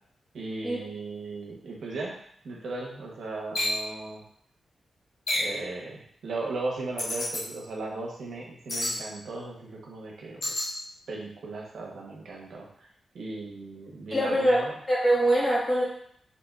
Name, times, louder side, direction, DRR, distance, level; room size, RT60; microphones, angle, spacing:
voice 1, 0.3-2.1 2.4-4.2 5.3-10.5 11.1-12.7 13.1-14.7, right 2 dB, 80° right, -2 dB, 0.9 m, -37 dB
sound 1, 3.5-3.8 5.3-5.6 7.0-7.4 8.7-9.0 10.4-10.7, left 1 dB, 55° left, 1.0 m, -28 dB
voice 2, 14.1-15.8, right 1 dB, 20° left, -6 dB, 1.4 m, -23 dB
5.0 x 2.7 x 2.3 m, 0.64 s
wide cardioid pair, 120°, 0 cm